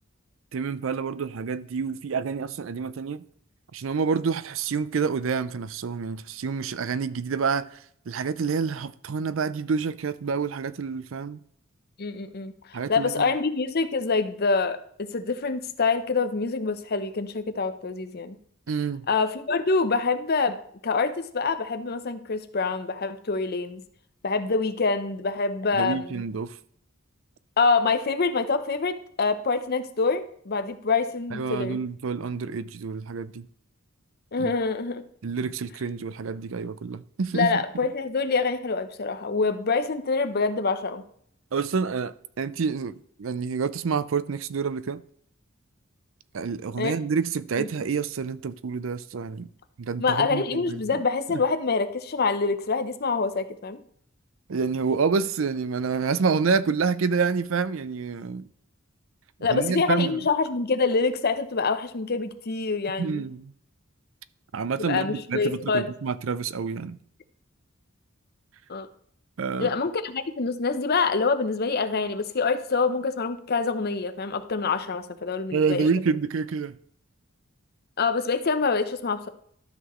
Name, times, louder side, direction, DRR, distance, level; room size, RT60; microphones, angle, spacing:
voice 1, 0.5-3.2 3.7-7.7 8.1-11.4 12.7-13.4 18.7-19.1 25.7-26.6 31.3-33.5 34.4-34.5 35.2-37.6 41.5-45.0 46.3-49.5 49.8-51.0 51.3-51.4 54.5-58.5 59.5-60.2 63.0-63.5 64.5-67.0 69.4-69.7 75.5-76.8, right 5 dB, 70° right, 0.5 m, -28 dB
voice 2, 12.0-18.4 19.1-20.6 20.8-23.8 24.2-26.2 27.6-31.8 34.3-35.0 37.3-41.0 46.8-46.9 47.6-47.7 50.0-53.8 59.4-63.2 64.8-65.9 68.7-68.9 69.6-75.8 78.0-79.3, left 4 dB, 50° left, 0.7 m, -26 dB
13.0 x 6.0 x 3.1 m
head